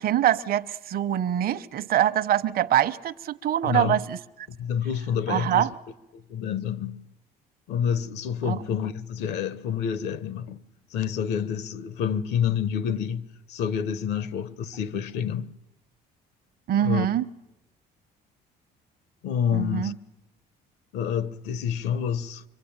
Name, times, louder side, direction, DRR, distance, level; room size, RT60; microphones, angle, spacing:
voice 1, 0.0-4.2 5.3-5.7 8.5-8.6 16.7-17.2 19.5-20.0, right 11 dB, 60° right, 0.9 m, -24 dB
voice 2, 3.6-4.0 4.5-5.7 6.1-7.1 7.7-10.6 10.9-15.5 16.8-17.1 19.2-19.9 20.9-22.4, left 8 dB, 85° left, 1.1 m, -28 dB
24.0 x 24.0 x 8.9 m
cardioid pair, 110°, 17 cm